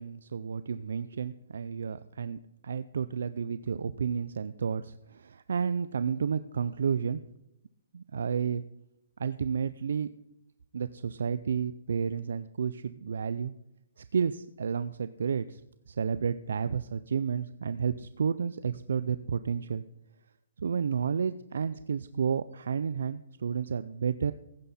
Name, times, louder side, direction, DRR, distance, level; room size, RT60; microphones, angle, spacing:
voice 1, 0.0-7.2 7.9-8.6 9.2-10.1 10.7-13.5 14.0-15.6 15.9-19.8 20.6-24.3, right 6 dB, 65° right, 14 dB, 0.4 m, -31 dB
15.0 x 9.6 x 4.2 m, 0.81 s
hypercardioid pair, 180°, 0 cm